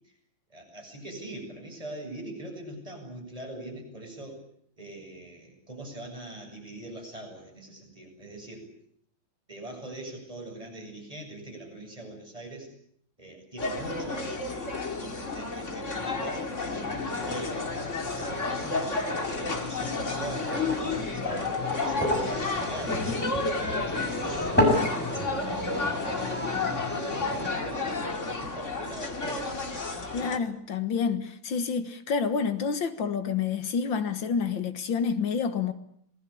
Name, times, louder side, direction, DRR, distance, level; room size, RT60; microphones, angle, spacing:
voice 1, 0.5-4.4 4.8-8.7 9.5-12.7 13.2-17.7 18.3-25.0 25.5-29.7, right 2 dB, 15° right, 7.9 m, -42 dB
sound 1, 13.6-30.4, left 3 dB, 40° left, 2.7 m, -31 dB
sound 2, 16.8-27.5, left 1 dB, 5° left, 7.9 m, -32 dB
voice 2, 30.1-35.7, left 6 dB, 80° left, 2.2 m, -28 dB
27.0 x 20.0 x 8.5 m
omnidirectional pair, 2.1 m